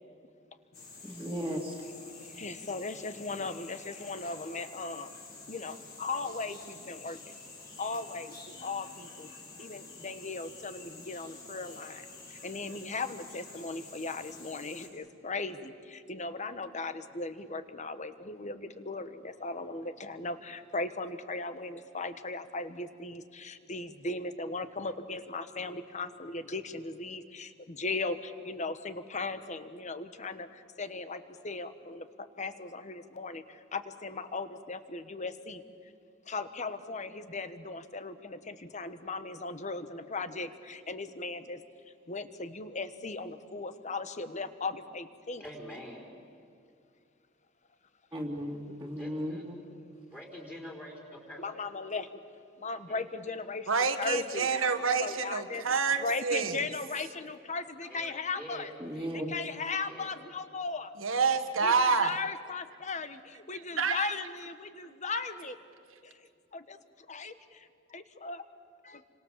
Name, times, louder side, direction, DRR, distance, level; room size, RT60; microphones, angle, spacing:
sound 1, 0.7-14.9, left 3 dB, 55° left, 6.4 m, -49 dB
voice 1, 1.0-1.9 48.1-49.6 58.8-59.4, equal, 10° right, -5 dB, 2.7 m, -36 dB
voice 2, 2.1-5.1 5.5-7.3 7.8-9.3 9.6-32.1 32.4-35.6 36.3-41.6 42.1-45.4 51.4-52.2 52.6-53.7 54.0-54.5 55.0-55.6 56.0-58.7 59.3-60.9 61.6-65.6 66.0-66.8 67.1-68.4 68.8-69.0, left 3 dB, 35° left, 11 dB, 1.3 m, -37 dB
voice 3, 45.4-46.1 49.0-49.4 50.0-51.0 51.3-51.4 52.9-53.0 57.9-58.0 58.3-58.7 59.9-60.1, equal, 10° left, -1 dB, 4.7 m, -45 dB
voice 4, 53.7-56.6 61.0-62.1 63.8-64.1, right 5 dB, 90° right, 8 dB, 1.7 m, -27 dB
29.5 x 25.5 x 7.5 m, 2.3 s
head